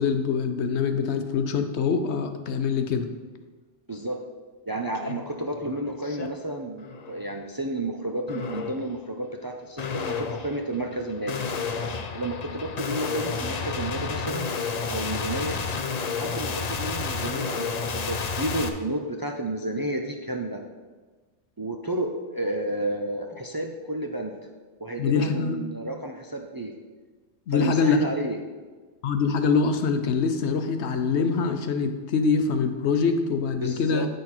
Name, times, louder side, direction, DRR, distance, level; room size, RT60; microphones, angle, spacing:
voice 1, 0.0-3.1 25.0-25.6 27.5-28.0 29.0-34.1, left 5 dB, 70° left, 7 dB, 1.0 m, -24 dB
voice 2, 4.7-11.4 12.1-14.5 14.9-15.6 16.2-20.6 21.6-24.4 24.8-26.7 27.5-28.4 33.6-34.1, right 1 dB, 30° right, 2 dB, 0.4 m, -31 dB
sound 1, 4.9-5.1 5.5-6.3 6.8-7.2 8.3-8.9 9.8-18.7, left 5 dB, 45° left, 0.6 m, -31 dB
9.2 x 6.5 x 4.3 m, 1.4 s
omnidirectional pair, 1.2 m